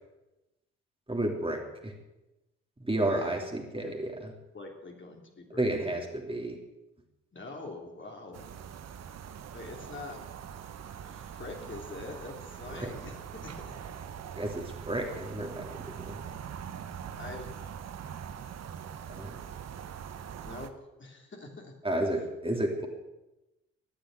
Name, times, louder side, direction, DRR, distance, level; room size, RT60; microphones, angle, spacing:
voice 1, 1.1-1.9 2.8-4.1 5.6-6.6 12.8-12.9 14.4-16.2 19.1-19.3 21.8-22.9, right 1 dB, 15° right, 1 dB, 3.1 m, -31 dB
voice 2, 3.0-3.4 3.8-3.9 4.5-5.7 7.3-8.4 9.5-10.2 11.0-13.6 17.2-17.5 20.4-20.7 21.0-21.7, left 3 dB, 30° left, 1 dB, 3.2 m, -44 dB
sound 1, 8.3-20.7, right 8 dB, 45° right, 1.1 m, -43 dB
13.5 x 11.5 x 7.8 m, 1.0 s
figure-of-eight pair, 40°, 37 cm